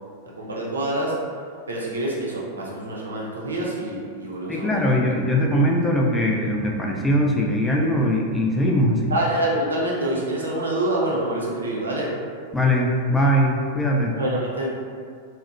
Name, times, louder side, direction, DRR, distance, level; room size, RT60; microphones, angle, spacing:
voice 1, 0.4-1.2 1.7-5.0 9.1-12.1 14.2-14.7, right 1 dB, 70° right, -3 dB, 0.5 m, -26 dB
voice 2, 4.5-9.1 12.5-14.1, equal, 10° left, -2 dB, 0.4 m, -21 dB
2.7 x 2.0 x 2.4 m, 2.1 s
figure-of-eight pair, 90°, 0 cm